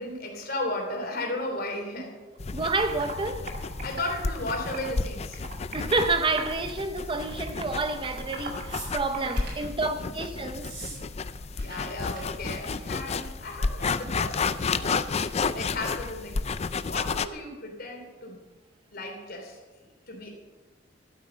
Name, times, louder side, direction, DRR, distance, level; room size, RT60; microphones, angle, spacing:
voice 1, 0.0-2.2 3.8-5.5 9.1-9.8 11.6-16.5 16.9-18.4 18.9-19.6 20.1-20.3, left 2 dB, 55° left, 3.1 m, -35 dB
Computer keyboard, 2.3-2.4 2.8-3.1 3.5-5.0 5.3-6.1 6.4-6.8 7.1-9.4, right 3 dB, 45° right, 2.0 m, -39 dB
sound 1, 2.4-17.3, left 4 dB, 35° left, 0.5 m, -32 dB
voice 2, 2.5-3.5 5.7-10.7, right 3 dB, 25° right, 0.7 m, -29 dB
sound 2, 8.7-9.7 10.5-11.0 11.2-11.8 12.0-12.2 12.5-12.8 13.8-13.9, right 3 dB, 65° right, 5.2 m, -42 dB
12.5 x 9.0 x 6.8 m
head